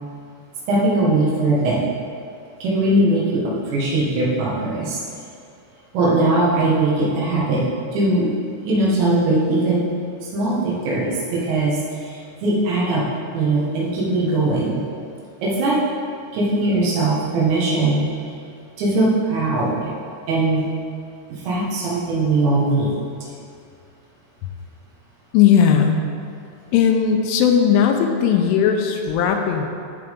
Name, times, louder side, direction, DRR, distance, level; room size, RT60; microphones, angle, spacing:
voice 1, 0.7-1.8 2.6-5.0 5.9-7.7 7.9-9.9 10.2-13.1 13.3-14.8 15.4-15.9 16.3-18.2 18.8-19.9 20.3-20.7 21.3-23.0, right 2 dB, 70° right, -6 dB, 3.6 m, -20 dB
voice 2, 25.3-26.1 26.7-29.7, left 7 dB, 85° left, 4 dB, 3.1 m, -17 dB
12.5 x 6.9 x 3.7 m, 2.4 s
omnidirectional pair, 5.7 m